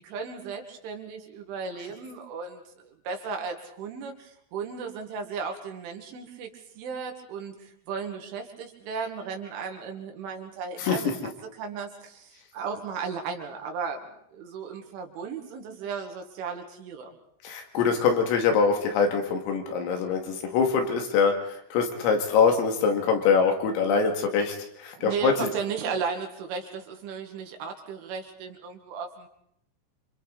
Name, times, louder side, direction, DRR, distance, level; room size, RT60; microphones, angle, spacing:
voice 1, 0.0-11.1 11.6-17.1 25.0-29.3, right 5 dB, 70° right, 4 dB, 4.4 m, -35 dB
voice 2, 17.4-25.5, left 5 dB, 85° left, 3 dB, 5.0 m, -24 dB
28.5 x 26.0 x 4.1 m, 0.71 s
omnidirectional pair, 5.9 m